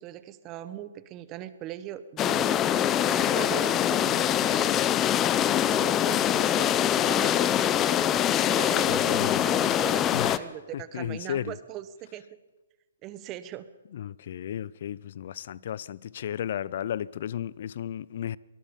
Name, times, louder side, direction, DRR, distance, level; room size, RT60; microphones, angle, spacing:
voice 1, 0.0-4.9 5.7-12.2 13.0-13.7, right 12 dB, 25° right, 1.3 m, -39 dB
sound 1, 2.2-10.4, left 11 dB, 20° left, 0.8 m, -24 dB
voice 2, 8.9-9.4 10.1-10.4 10.7-11.6 13.9-18.4, left 10 dB, 55° left, 0.6 m, -34 dB
24.5 x 20.0 x 5.4 m
hypercardioid pair, 135°, 0 cm